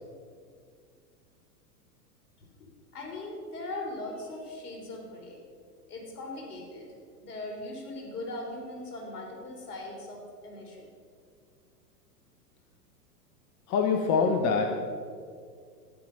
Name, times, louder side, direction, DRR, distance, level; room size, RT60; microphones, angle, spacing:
voice 1, 2.9-5.4 5.9-6.9 7.2-10.9, left 2 dB, 65° left, 0 dB, 4.0 m, -39 dB
voice 2, 13.7-14.7, left 5 dB, 35° left, 4 dB, 1.2 m, -24 dB
12.0 x 10.5 x 5.4 m, 2.1 s
hypercardioid pair, 105°, 48 cm